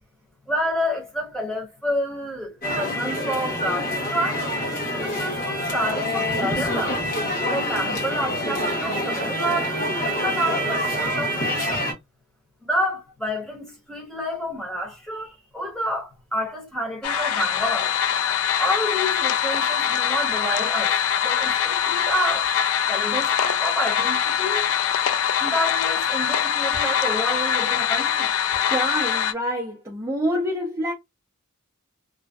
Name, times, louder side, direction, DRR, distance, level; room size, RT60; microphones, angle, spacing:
voice 1, 0.5-4.4 5.0-7.0 7.5-11.8 12.6-17.9 18.6-20.9 21.2-22.5 22.9-24.6 25.4-28.3, equal, 5° left, 0.9 m, -29 dB
sound 1, 2.6-11.9, equal, 40° left, 1.0 m, -26 dB
sound 2, 17.0-29.3, left 8 dB, 65° left, 0.3 m, -23 dB
voice 2, 28.7-30.9, equal, 15° right, 0.5 m, -26 dB
2.5 x 2.1 x 2.2 m
head